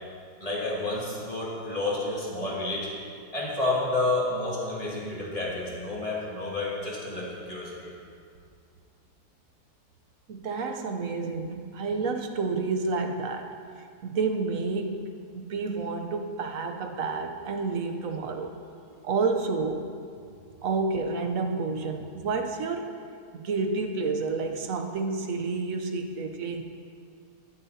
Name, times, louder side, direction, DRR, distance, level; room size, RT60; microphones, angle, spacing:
voice 1, 0.4-2.9 3.3-7.9, left 2 dB, 20° left, -7 dB, 2.4 m, -30 dB
voice 2, 10.3-13.6 14.0-18.6 19.0-19.9 20.6-23.0 23.3-26.6, right 4 dB, 60° right, 5 dB, 1.0 m, -30 dB
14.0 x 11.0 x 2.7 m, 2.3 s
omnidirectional pair, 1.8 m